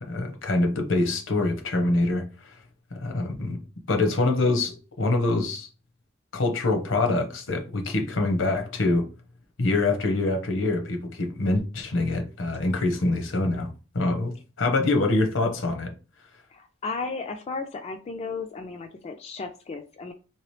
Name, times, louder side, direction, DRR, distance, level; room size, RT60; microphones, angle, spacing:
voice 1, 0.0-2.5 2.9-3.6 3.9-5.7 6.3-9.0 9.6-13.7 13.9-15.9, left 2 dB, 75° left, 0.8 m, -25 dB
voice 2, 16.5-20.1, left 4 dB, 35° left, 0.3 m, -34 dB
3.2 x 2.9 x 3.2 m
head